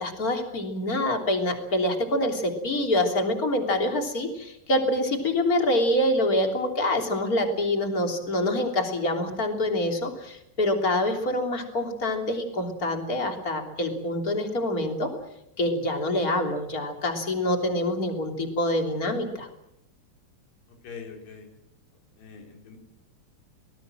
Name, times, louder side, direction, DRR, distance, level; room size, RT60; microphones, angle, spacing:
voice 1, 0.0-15.1 15.6-19.5, left 1 dB, 25° left, 4 dB, 3.1 m, -26 dB
voice 2, 20.8-21.5 22.2-22.8, left 6 dB, 75° left, 3 dB, 6.4 m, -43 dB
25.5 x 19.5 x 7.7 m, 0.82 s
omnidirectional pair, 4.9 m